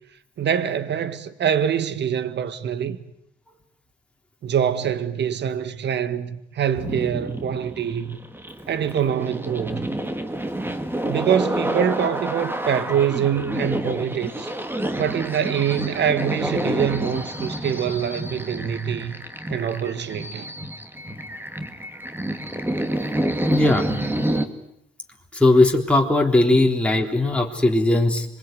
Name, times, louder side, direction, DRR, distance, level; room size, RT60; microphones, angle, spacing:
voice 1, 0.4-3.0 4.4-8.2 8.7-9.9 11.0-14.5 14.9-19.2 19.5-20.5 26.5-26.7, right 8 dB, 60° right, 1.8 m, -24 dB
sound 1, 6.8-24.5, right 1 dB, 10° right, 2.3 m, -28 dB
voice 2, 23.4-24.2 25.3-28.3, left 2 dB, 5° left, 3.7 m, -19 dB
26.5 x 22.5 x 9.4 m
cardioid pair, 90°, 20 cm